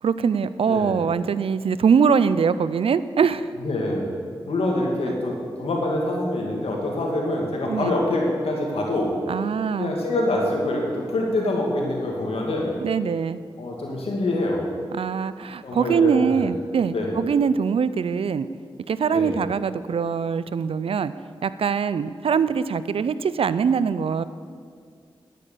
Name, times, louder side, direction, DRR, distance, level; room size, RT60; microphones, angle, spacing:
voice 1, 0.0-3.5 7.6-7.9 9.3-10.0 12.8-13.4 14.9-18.5 18.9-21.1 21.4-24.2, right 6 dB, 75° right, 15 dB, 0.5 m, -23 dB
voice 2, 3.6-4.1 4.5-9.1 9.8-12.7 13.6-14.6 15.6-16.3 16.9-17.1 19.1-19.3, left 1 dB, 85° left, -1 dB, 2.4 m, -25 dB
11.0 x 8.5 x 6.9 m, 2.1 s
cardioid pair, 45°, 10 cm